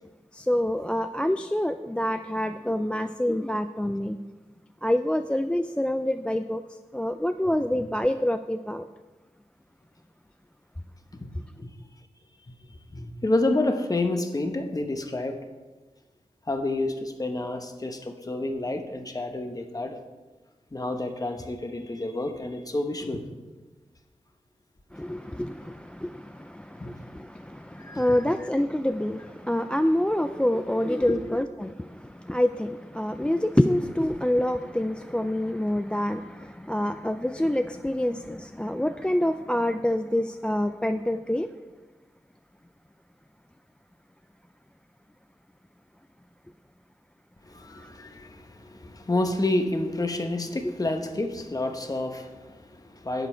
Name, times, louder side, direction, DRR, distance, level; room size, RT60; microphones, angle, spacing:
voice 1, 0.3-4.2 4.8-6.6 6.9-8.9 24.9-41.5, left 1 dB, 10° left, 0.3 m, -27 dB
voice 2, 12.6-15.4 16.5-20.0 20.7-23.2 26.8-26.9 27.8-28.2 31.0-31.2 47.4-53.3, left 2 dB, 30° left, 1.0 m, -29 dB
11.0 x 7.7 x 4.4 m
wide cardioid pair, 85°, 12 cm